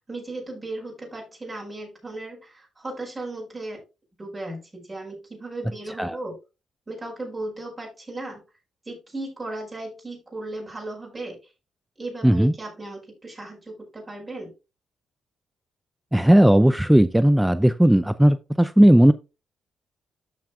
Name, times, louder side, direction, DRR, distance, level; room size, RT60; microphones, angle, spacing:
voice 1, 0.1-3.8 4.2-6.4 6.9-8.4 8.8-11.4 12.0-14.5, right 2 dB, 30° right, 5.1 m, -36 dB
voice 2, 12.2-12.5 16.1-19.1, right 1 dB, 5° right, 0.5 m, -16 dB
13.5 x 5.8 x 2.4 m
supercardioid pair, 50°, 0 cm